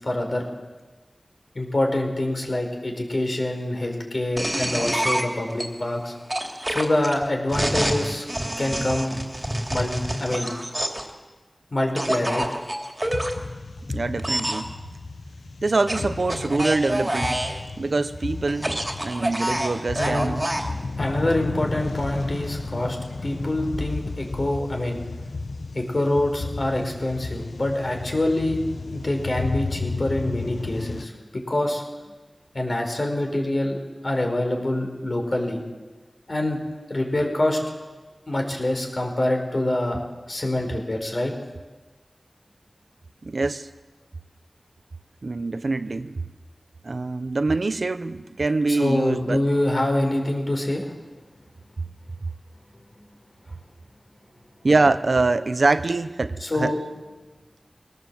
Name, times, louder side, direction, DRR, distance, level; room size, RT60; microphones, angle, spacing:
voice 1, 0.0-0.5 1.5-6.2 6.7-8.2 8.6-9.2 9.7-9.9 10.2-10.5 11.7-12.4 20.0-20.3 21.0-23.0 23.2-25.0 25.7-28.6 28.9-31.8 32.5-35.6 36.3-36.6 36.9-37.6 38.3-40.0 40.3-41.3 48.7-50.8 56.4-56.8, left 1 dB, 50° left, 3 dB, 5.0 m, -25 dB
sound 1, 4.4-5.6 6.3-11.1 12.0-13.3 14.2-14.6 15.9-17.6 18.5-20.7, right 1 dB, 20° right, 3.0 m, -27 dB
sound 2, 13.0-31.1, left 3 dB, 85° left, 1.1 m, -33 dB
voice 2, 13.9-14.7 15.6-17.4 17.8-20.4 43.2-43.7 45.2-46.2 46.8-49.4 54.6-56.7, right 3 dB, 70° right, 11 dB, 0.9 m, -24 dB
23.0 x 18.5 x 7.8 m, 1.3 s
wide cardioid pair, 70°, 0 cm